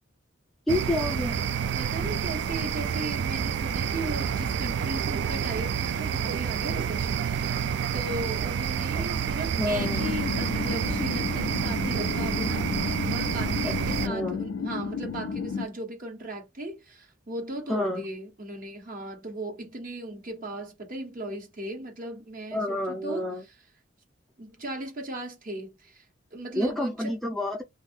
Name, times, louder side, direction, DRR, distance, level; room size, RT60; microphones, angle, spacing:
voice 1, 0.7-1.4 8.9-9.1 9.6-10.1 13.6-13.7 14.0-14.4 17.7-18.1 22.5-23.4 26.6-27.6, left 1 dB, ahead, 0.5 m, -29 dB
sound 1, 0.7-14.1, right 7 dB, 60° right, 0.3 m, -29 dB
voice 2, 1.8-7.6 7.9-23.3 24.4-26.0 26.3-27.1, right 1 dB, 45° right, 1.2 m, -37 dB
sound 2, 9.8-15.7, left 5 dB, 85° left, 0.4 m, -32 dB
2.7 x 2.4 x 3.6 m
head